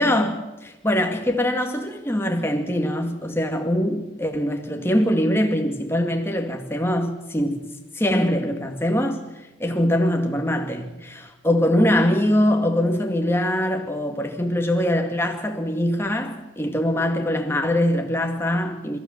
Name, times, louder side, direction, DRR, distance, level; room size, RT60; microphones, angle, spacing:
voice 1, 0.0-7.7 8.0-9.2 9.6-19.0, left 1 dB, 10° left, 2.2 m, -23 dB
29.5 x 15.0 x 7.4 m
head